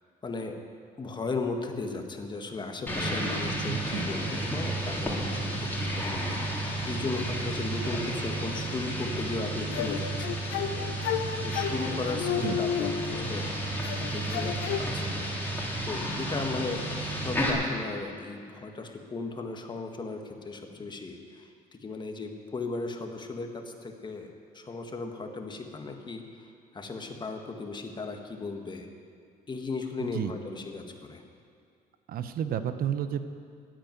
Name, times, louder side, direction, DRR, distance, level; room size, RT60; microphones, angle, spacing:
voice 1, 0.2-0.6 1.0-10.4 10.7-13.7 14.0-15.3 15.8-28.9 29.5-31.2, left 3 dB, 25° left, 4 dB, 1.7 m, -36 dB
sound 1, 2.9-17.5, right 1 dB, 10° left, 3.5 m, -32 dB
voice 2, 3.6-4.0 12.3-12.6 30.1-30.3 32.1-33.3, right 9 dB, 60° right, 10 dB, 0.8 m, -31 dB
sound 2, 9.7-13.4 13.8-14.9, left 9 dB, 85° left, 1.0 m, -32 dB
13.5 x 9.2 x 9.4 m, 2.3 s
cardioid pair, 110°, 17 cm